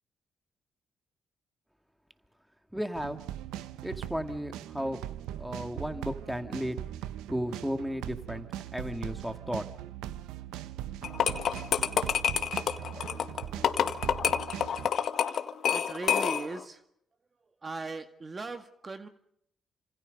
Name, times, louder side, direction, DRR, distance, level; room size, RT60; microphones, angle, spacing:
voice 1, 2.7-3.2 3.8-5.0 5.4-6.8 7.3-8.5 8.7-9.6, equal, 5° right, 8 dB, 2.4 m, -34 dB
sound 1, 2.9-14.9, right 12 dB, 85° right, 0.9 m, -40 dB
sound 2, 11.0-16.6, left 8 dB, 65° left, 1.7 m, -28 dB
voice 2, 15.7-16.8 17.6-19.1, right 3 dB, 35° right, 8 dB, 2.0 m, -38 dB
29.0 x 26.5 x 5.4 m, 0.73 s
supercardioid pair, 55°, 0 cm